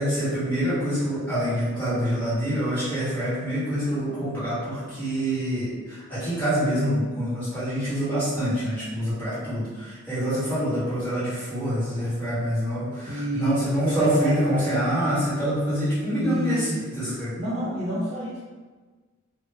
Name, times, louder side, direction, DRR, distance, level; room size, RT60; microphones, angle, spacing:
voice 1, 0.0-17.3, equal, 10° left, -12 dB, 1.1 m, -26 dB
voice 2, 13.1-14.7 16.2-16.8 17.4-18.4, right 1 dB, 30° right, -10 dB, 0.4 m, -28 dB
2.1 x 2.0 x 3.3 m, 1.3 s
head